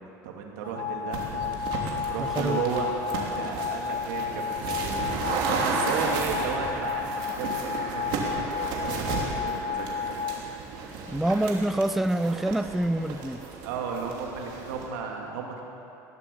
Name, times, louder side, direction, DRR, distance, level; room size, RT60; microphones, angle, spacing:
voice 1, 0.0-1.4 2.1-5.1 5.6-10.4 13.6-15.6, right 6 dB, 85° right, 0 dB, 2.5 m, -34 dB
sound 1, 0.6-10.3, left 7 dB, 55° left, 1.9 m, -32 dB
sound 2, 1.1-14.9, right 4 dB, 65° right, 2.9 m, -33 dB
voice 2, 2.2-2.6 11.1-13.4, right 1 dB, 5° right, 12 dB, 0.4 m, -26 dB
16.5 x 11.0 x 6.9 m, 3.0 s
supercardioid pair, 105°, 9 cm